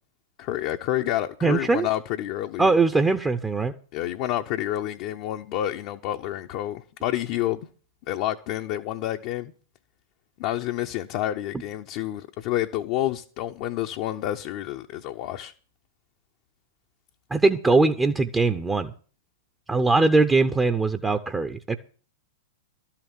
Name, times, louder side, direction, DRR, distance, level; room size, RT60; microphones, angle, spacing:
voice 1, 0.4-2.7 3.9-7.6 8.1-9.5 10.4-15.5, left 13 dB, 45° left, 0.6 m, -29 dB
voice 2, 1.4-1.9 2.6-3.7 17.3-18.9 19.7-21.8, right 3 dB, 15° right, 0.7 m, -21 dB
12.5 x 5.8 x 8.9 m
figure-of-eight pair, 100°, 0 cm